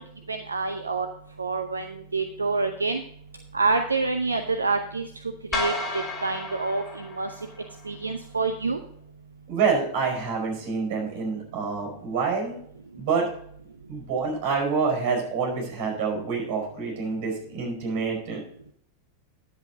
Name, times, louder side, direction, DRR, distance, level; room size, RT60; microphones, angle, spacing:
voice 1, 0.3-1.1 1.4-3.0 3.5-5.1 5.5-7.3 7.9-8.8, right 3 dB, 80° right, 7 dB, 0.6 m, -27 dB
sound 1, 5.5-7.9, left 2 dB, 20° left, 1.9 m, -32 dB
voice 2, 9.5-12.6 13.0-13.3 13.9-18.4, right 5 dB, 50° right, 0 dB, 4.9 m, -27 dB
10.5 x 7.6 x 3.9 m, 0.64 s
figure-of-eight pair, 90°, 0 cm